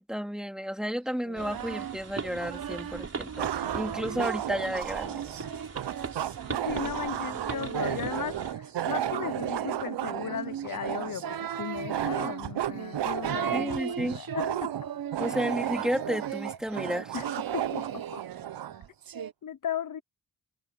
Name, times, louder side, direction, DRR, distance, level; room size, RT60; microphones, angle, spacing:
voice 1, 0.0-5.2 13.5-14.2 15.2-17.2, equal, ahead, 3.4 m, -32 dB
Singing, 1.2-4.3 4.8-19.3, right 8 dB, 60° right, 1.1 m, -38 dB
sound 1, 1.4-8.5, right 4 dB, 35° right, 4.3 m, -40 dB
sound 2, 2.4-2.5 3.4-18.8, right 11 dB, 85° right, 1.0 m, -34 dB
voice 2, 6.5-14.7 15.2-15.4 17.1-17.3 17.5-17.8 18.1-18.2 19.4-20.0, left 9 dB, 50° left, 0.9 m, -36 dB
wide cardioid pair, 110°, 40 cm